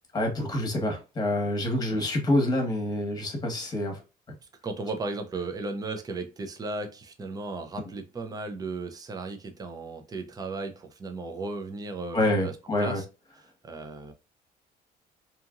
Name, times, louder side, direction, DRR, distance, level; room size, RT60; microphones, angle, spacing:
voice 1, 0.1-4.0 12.1-13.0, left 1 dB, 25° left, 1.1 m, -27 dB
voice 2, 4.6-12.5 12.8-13.0 13.6-14.1, right 3 dB, 20° right, 0.6 m, -35 dB
2.8 x 2.5 x 2.3 m
cardioid pair, 110°, 17 cm